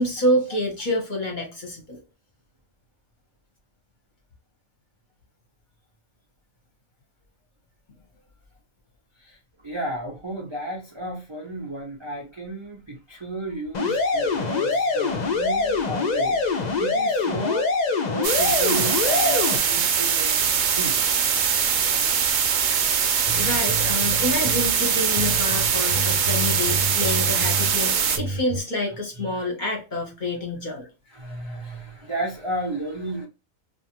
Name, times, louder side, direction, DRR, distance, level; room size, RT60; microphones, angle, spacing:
voice 1, 0.0-2.0 23.4-30.8, left 1 dB, 45° left, 0.8 m, -27 dB
voice 2, 9.2-17.7 18.1-21.0 29.2-29.5 31.1-33.3, right 2 dB, 45° right, 0.4 m, -33 dB
sound 1, 13.7-19.6, left 4 dB, 65° left, 0.4 m, -24 dB
sound 2, 18.2-28.2, right 7 dB, 65° right, 0.8 m, -22 dB
sound 3, 23.3-28.6, right 2 dB, 85° right, 1.1 m, -31 dB
2.4 x 2.4 x 2.8 m
omnidirectional pair, 1.4 m